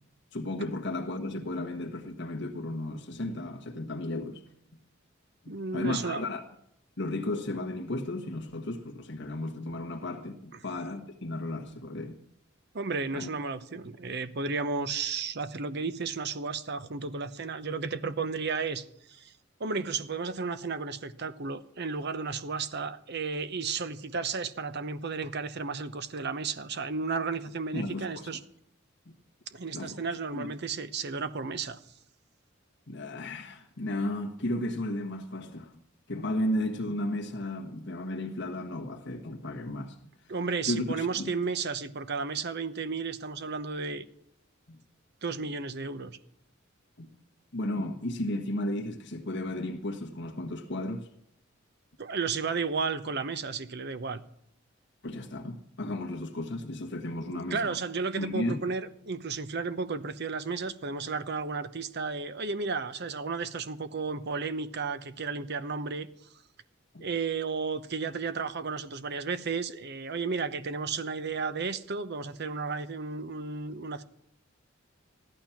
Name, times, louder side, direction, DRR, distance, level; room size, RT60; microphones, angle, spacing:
voice 1, 0.3-4.4 5.4-6.4 7.0-12.2 13.1-13.3 27.7-28.3 29.7-30.0 30.3-30.5 32.9-35.8 36.1-40.0 40.7-41.3 44.7-44.8 47.0-47.1 47.5-51.1 55.0-57.8 58.2-58.6 66.9-67.1, left 1 dB, 60° left, 1.4 m, -34 dB
voice 2, 5.5-6.2 12.7-19.3 19.6-28.4 29.5-31.8 40.3-44.0 45.2-46.2 52.0-54.2 57.2-66.1 67.0-74.0, right 4 dB, 55° right, 0.9 m, -33 dB
14.5 x 11.5 x 5.8 m
head